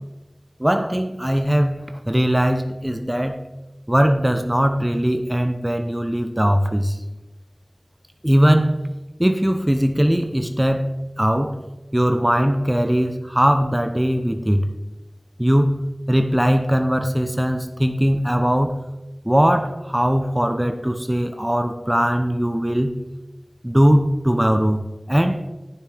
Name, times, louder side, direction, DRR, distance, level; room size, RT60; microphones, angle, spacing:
voice 1, 0.6-3.4 3.9-7.0 8.2-8.7 9.2-11.6 11.9-14.6 15.4-15.8 16.1-18.8 19.2-23.0 23.6-25.5, equal, 15° right, 6 dB, 0.8 m, -20 dB
10.5 x 9.5 x 3.5 m, 1.0 s
wide cardioid pair, 50°, 0 cm